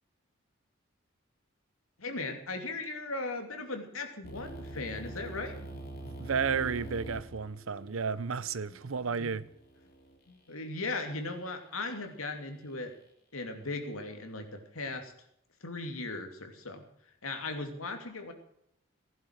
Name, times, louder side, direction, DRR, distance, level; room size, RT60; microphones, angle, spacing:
voice 1, 2.0-5.5 8.7-9.4 10.3-12.9 13.3-15.1 15.6-16.8 17.2-18.3, left 3 dB, 90° left, 2.8 m, -38 dB
sound 1, 4.2-10.2, right 1 dB, 45° left, 3.5 m, -45 dB
voice 2, 6.1-9.5, right 6 dB, 80° right, 0.7 m, -32 dB
16.0 x 11.0 x 6.5 m
head